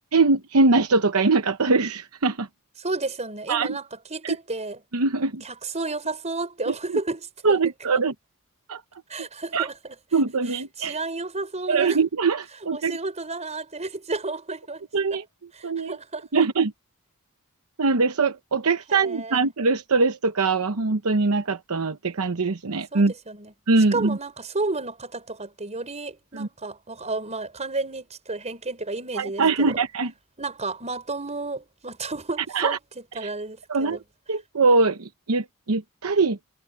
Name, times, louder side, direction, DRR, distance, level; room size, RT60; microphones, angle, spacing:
voice 1, 0.1-2.5 3.5-3.8 4.2-4.4 4.9-5.4 6.7-6.8 7.4-8.1 8.7-8.8 9.5-9.7 10.1-11.0 11.7-13.0 14.9-15.2 15.6-16.0 16.3-16.7 17.8-23.1 23.7-24.2 26.3-26.5 29.1-30.1 32.5-32.8 33.2-33.3 33.7-34.0 34.3-36.4, right 4 dB, 70° right, 0.9 m, -22 dB
voice 2, 2.8-4.8 5.4-7.6 9.1-10.0 10.5-12.0 12.7-14.8 15.1-15.2 15.5-16.4 18.9-19.4 22.7-23.5 23.9-29.7 30.4-34.0, right 3 dB, 30° right, 5.1 m, -32 dB
head